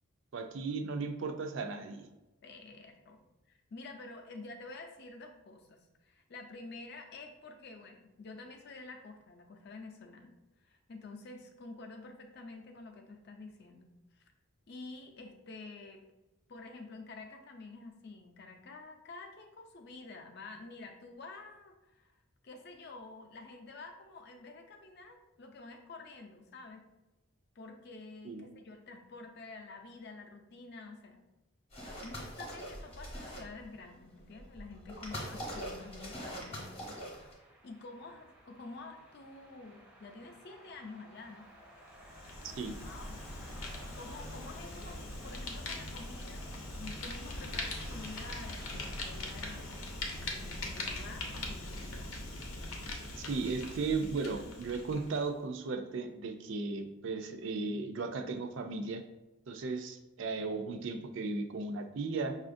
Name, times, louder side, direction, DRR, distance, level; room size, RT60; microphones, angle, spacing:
voice 1, 0.3-2.0 28.2-28.5 42.6-42.8 53.2-59.0 59.5-62.4, right 4 dB, 65° right, 6 dB, 0.4 m, -36 dB
voice 2, 2.4-14.3 14.7-16.0 16.5-22.1 22.4-26.8 27.6-31.3 32.0-37.0 37.6-41.5 42.8-43.2 43.9-46.4 46.8-52.1, left 3 dB, 50° left, 4 dB, 0.5 m, -49 dB
sound 1, 31.7-33.7 34.3-37.3, equal, 30° left, 0.8 m, -43 dB
sound 2, 36.3-51.4, equal, 5° right, 0.5 m, -55 dB
Fire, 41.9-55.2, left 2 dB, 90° left, 0.7 m, -41 dB
5.6 x 2.4 x 2.6 m, 1.0 s
head